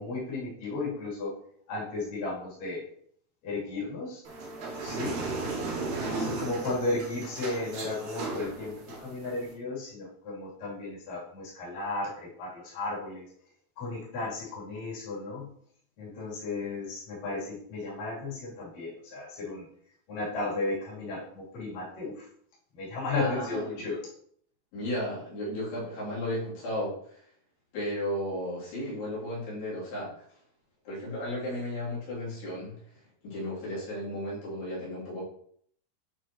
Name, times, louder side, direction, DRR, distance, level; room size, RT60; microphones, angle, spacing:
voice 1, 0.0-1.3 1.7-2.8 3.4-4.2 4.8-5.2 6.1-13.2 13.8-15.5 16.0-19.7 20.1-22.3 22.7-24.0, left 2 dB, 55° left, -8 dB, 4.5 m, -34 dB
sound 1, 4.2-9.5, right 3 dB, 65° right, 3.1 m, -35 dB
voice 2, 23.1-23.9 24.7-27.2 27.7-30.2 30.9-32.8 33.2-35.2, left 1 dB, 85° left, -8 dB, 5.1 m, -34 dB
10.5 x 4.5 x 3.0 m, 0.63 s
omnidirectional pair, 4.6 m